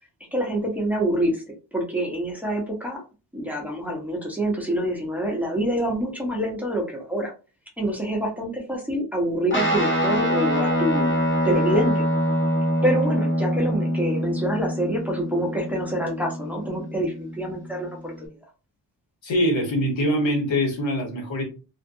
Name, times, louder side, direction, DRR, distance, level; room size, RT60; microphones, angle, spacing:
voice 1, 0.3-3.0 3.3-7.3 7.8-11.1 11.4-12.0 12.8-18.3, right 1 dB, 5° right, 0.8 m, -26 dB
Guitar, 9.5-18.3, equal, 25° left, 0.8 m, -25 dB
voice 2, 19.2-21.4, equal, 80° left, 1.3 m, -23 dB
2.6 x 2.4 x 2.6 m
wide cardioid pair, 130°, 45 cm